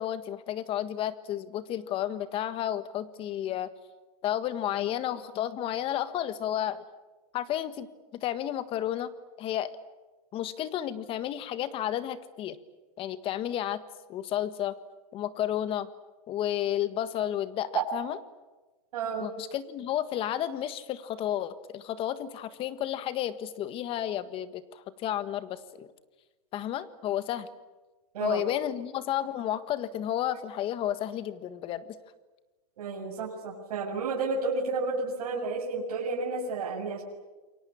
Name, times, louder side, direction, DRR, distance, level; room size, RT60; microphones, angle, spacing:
voice 1, 0.0-3.7 4.2-6.9 7.3-9.1 9.4-9.7 10.3-12.6 13.0-13.8 14.1-14.8 15.1-15.9 16.3-18.2 19.2-25.9 26.5-27.5 28.2-32.0, left 11 dB, 30° left, 13 dB, 1.6 m, -32 dB
voice 2, 18.9-19.3 28.1-28.4 32.8-37.0, right 4 dB, 75° right, -3 dB, 7.0 m, -31 dB
28.5 x 23.5 x 8.7 m, 1.2 s
supercardioid pair, 145°, 19 cm